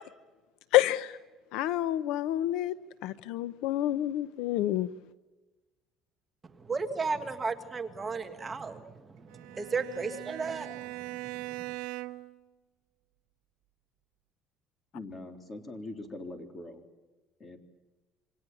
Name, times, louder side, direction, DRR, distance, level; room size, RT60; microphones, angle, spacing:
voice 1, 0.7-1.1 1.5-2.7 3.0-4.9, left 14 dB, 70° left, 14 dB, 0.9 m, -28 dB
voice 2, 6.7-8.8 9.5-10.7, right 4 dB, 15° right, 6 dB, 1.6 m, -33 dB
Bowed string instrument, 9.3-12.4, right 19 dB, 85° right, 1.4 m, -40 dB
voice 3, 14.9-16.8 17.4-17.6, left 2 dB, 20° left, 5 dB, 3.5 m, -42 dB
28.0 x 25.5 x 7.3 m, 1.2 s
cardioid pair, 170°, 0 cm